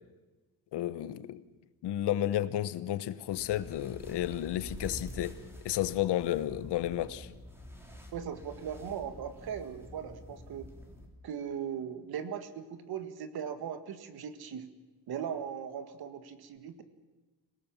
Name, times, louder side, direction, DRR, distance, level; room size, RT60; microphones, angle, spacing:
voice 1, 0.7-1.4 1.8-5.4 5.6-7.3, left 12 dB, 85° left, 15 dB, 1.1 m, -32 dB
sound 1, 3.3-11.1, left 1 dB, 5° right, 3.6 m, -47 dB
voice 2, 8.1-10.7 11.2-14.6 15.1-16.8, right 8 dB, 65° right, 10 dB, 1.9 m, -39 dB
26.0 x 18.0 x 7.3 m, 1.2 s
cardioid pair, 170°, 40 cm